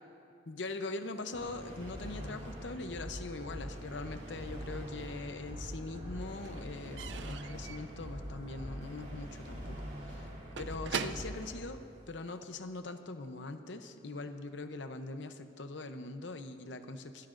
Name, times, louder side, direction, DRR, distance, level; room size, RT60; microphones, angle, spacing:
voice 1, 0.5-10.3 10.6-17.3, left 3 dB, 70° left, 8 dB, 0.7 m, -42 dB
sound 1, 1.3-11.5, equal, 40° right, 3.7 m, -43 dB
Slam / Squeak / Wood, 4.7-5.6 5.8-12.6, right 6 dB, 70° right, 0.5 m, -44 dB
23.5 x 19.5 x 2.6 m, 2.6 s
head